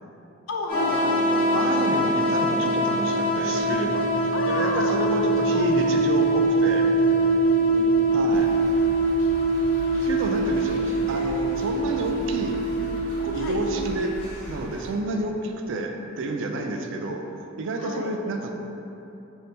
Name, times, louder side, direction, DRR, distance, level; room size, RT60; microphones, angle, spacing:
voice 1, 0.5-1.5 4.3-5.0 5.5-5.9 7.5-7.9 9.9-10.1 13.4-13.6 16.6-16.8 17.8-18.1, left 2 dB, 70° left, 2 dB, 0.4 m, -32 dB
sound 1, 0.7-13.9, right 1 dB, 45° left, 1.4 m, -23 dB
voice 2, 1.5-6.9 8.1-8.5 10.0-12.6 13.2-14.2 14.5-17.3 17.6-18.5, right 2 dB, 65° right, 4 dB, 0.4 m, -30 dB
sound 2, 8.3-14.9, equal, 10° left, 1.5 m, -42 dB
5.1 x 2.7 x 2.7 m, 3.0 s
head